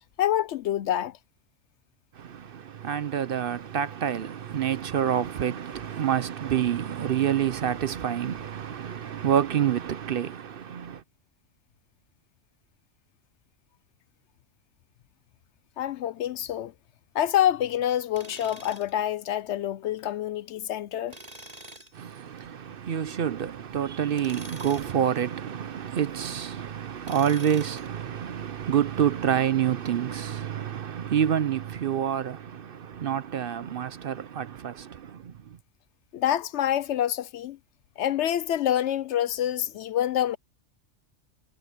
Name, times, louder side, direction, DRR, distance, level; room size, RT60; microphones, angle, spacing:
voice 1, 0.2-1.2 15.8-16.7 17.1-21.2 36.1-37.6 38.0-40.4, left 11 dB, 70° left, 0.8 m, -27 dB
voice 2, 2.2-11.0 21.9-35.6, right 9 dB, 55° right, 0.7 m, -28 dB
Tools, 18.1-19.0 21.1-22.0 24.1-25.0 27.0-28.0, right 1 dB, 35° right, 4.7 m, -45 dB
omnidirectional pair, 1.3 m